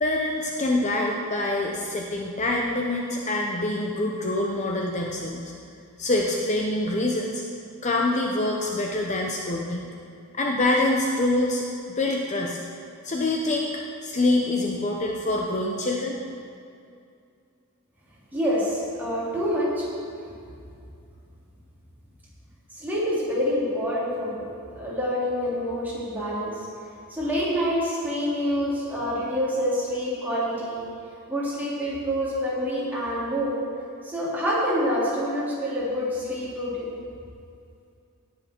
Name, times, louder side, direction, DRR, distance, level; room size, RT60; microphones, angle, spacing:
voice 1, 0.0-5.5 6.0-7.4 7.8-9.9 10.3-11.6 12.0-12.6 13.0-16.2, left 2 dB, 30° left, 0 dB, 0.7 m, -25 dB
voice 2, 18.3-19.8 22.7-24.5 24.7-26.5 27.1-30.8 31.3-33.6 34.0-36.9, equal, 10° right, -8 dB, 3.0 m, -27 dB
18.0 x 6.6 x 4.4 m, 2.5 s
head